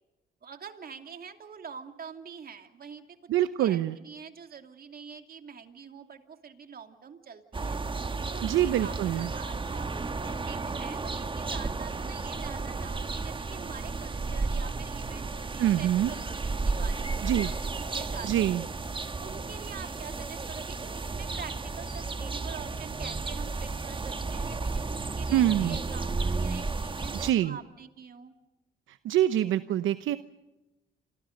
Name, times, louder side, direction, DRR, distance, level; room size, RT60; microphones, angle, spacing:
voice 1, 0.4-3.2 3.6-7.8 8.3-9.9 10.2-17.6 17.9-18.8 19.2-28.3, right 6 dB, 50° right, 6 dB, 2.8 m, -45 dB
voice 2, 3.3-4.0 8.4-9.3 15.6-16.1 17.2-17.5 18.2-18.6 25.3-25.8 27.1-27.6 28.9-30.2, right 12 dB, 80° right, 11 dB, 0.9 m, -25 dB
sound 1, 7.5-27.3, right 3 dB, 25° right, 1.5 m, -33 dB
30.0 x 26.5 x 5.3 m, 1.0 s
cardioid pair, 90°, 20 cm